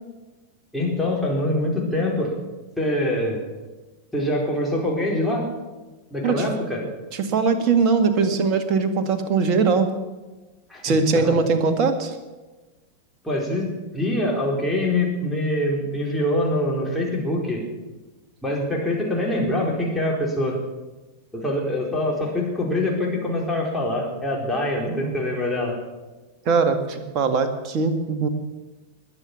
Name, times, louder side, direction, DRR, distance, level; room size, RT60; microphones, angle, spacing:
voice 1, 0.7-2.3 2.8-3.4 4.1-5.5 6.1-6.9 10.7-11.4 13.2-17.6 18.4-20.6 21.3-25.7, left 1 dB, 5° left, -2 dB, 4.5 m, -24 dB
voice 2, 7.2-9.9 10.8-12.1 24.9-25.1 26.5-28.3, right 5 dB, 35° right, 7 dB, 2.0 m, -21 dB
21.0 x 7.9 x 7.1 m, 1.2 s
figure-of-eight pair, 90°, 0 cm